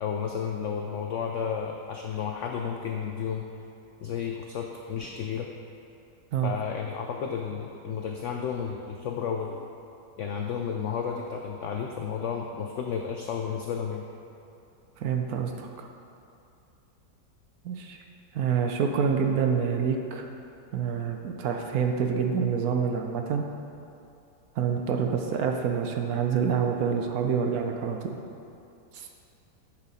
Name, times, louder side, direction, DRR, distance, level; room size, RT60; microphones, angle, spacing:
voice 1, 0.0-3.5 4.0-5.5 6.4-9.6 10.2-14.1, left 7 dB, 90° left, 2 dB, 0.6 m, -32 dB
voice 2, 15.0-15.9 17.6-18.0 18.3-20.3 20.7-23.5 24.6-28.1 28.9-29.1, right 6 dB, 70° right, 3 dB, 1.0 m, -27 dB
10.0 x 5.6 x 4.1 m, 2.7 s
omnidirectional pair, 1.9 m